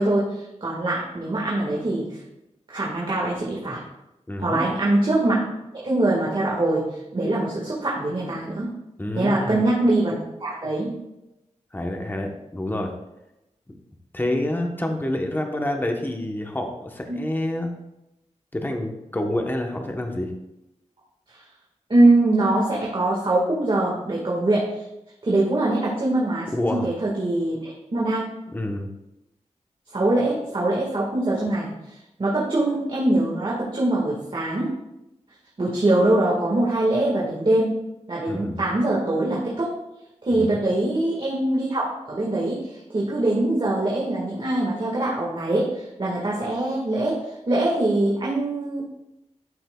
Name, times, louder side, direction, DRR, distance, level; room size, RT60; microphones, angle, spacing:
voice 1, 0.0-2.2 2.7-3.8 4.4-5.4 5.7-8.7 9.1-10.9 17.1-17.2 21.3-21.4 21.9-24.8 25.2-28.2 29.9-34.7 35.6-37.7 38.1-39.7 40.2-47.2 47.5-48.8, right 2 dB, 45° right, -5 dB, 1.7 m, -23 dB
voice 2, 4.3-4.7 9.0-9.6 11.7-12.9 13.7-13.8 14.1-17.7 18.5-20.3 26.5-26.9 28.5-28.9 38.2-38.6 40.3-40.6, left 1 dB, 15° left, 3 dB, 1.0 m, -28 dB
12.5 x 5.9 x 2.3 m, 0.92 s
wide cardioid pair, 85°, 12 cm